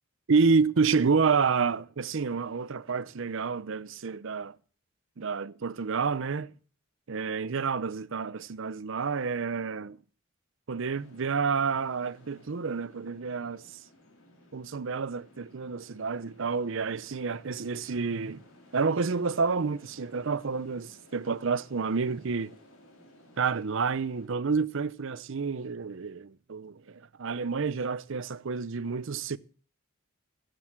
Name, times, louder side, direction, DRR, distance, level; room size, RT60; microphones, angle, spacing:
voice 1, 0.3-4.6 5.2-6.5 7.1-10.0 10.7-13.6 14.5-18.4 18.7-22.6 23.4-29.4, right 5 dB, 65° right, 0.6 m, -29 dB
sound 1, 10.9-24.3, left 1 dB, 75° left, 3.8 m, -58 dB
14.5 x 7.7 x 7.3 m
head